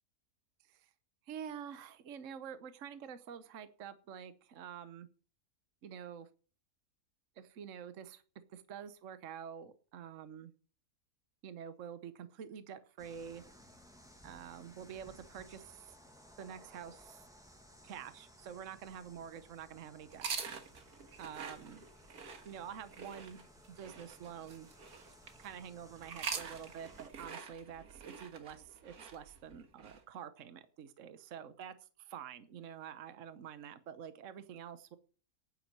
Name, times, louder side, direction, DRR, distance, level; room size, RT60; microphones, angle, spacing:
voice 1, 1.3-5.1 5.8-6.3 7.4-8.2 8.5-10.5 11.4-13.4 14.2-16.0 16.4-17.2 17.8-20.5 21.2-21.8 22.4-23.4 23.7-24.7 25.4-35.0, right 8 dB, 60° right, 12 dB, 1.2 m, -48 dB
sound 1, 13.0-27.1, equal, ahead, 1.5 m, -60 dB
sound 2, 20.1-25.5 26.0-30.0, right 5 dB, 85° right, 2.0 m, -45 dB
9.4 x 9.2 x 7.5 m, 0.39 s
omnidirectional pair, 1.5 m